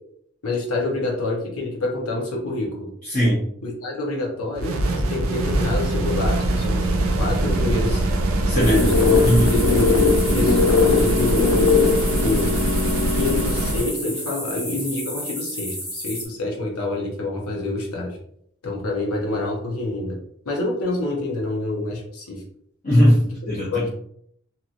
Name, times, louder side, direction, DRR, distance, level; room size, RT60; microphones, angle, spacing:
voice 1, 0.4-2.9 3.6-6.9 7.2-8.1 8.5-9.9 10.3-11.6 12.2-12.5 13.1-18.2 18.6-20.2 20.4-22.4 23.7-23.9, left 2 dB, 85° left, -1 dB, 0.9 m, -27 dB
voice 2, 3.0-3.5 8.5-8.8 9.3-9.5 22.8-23.9, equal, 35° left, -9 dB, 0.9 m, -19 dB
sound 1, 4.6-13.9, right 1 dB, 70° right, 0.5 m, -22 dB
sound 2, 8.6-16.2, equal, 10° left, 1.2 m, -32 dB
sound 3, 8.8-13.7, left 5 dB, 70° left, 0.4 m, -20 dB
2.9 x 2.7 x 2.5 m, 0.68 s
head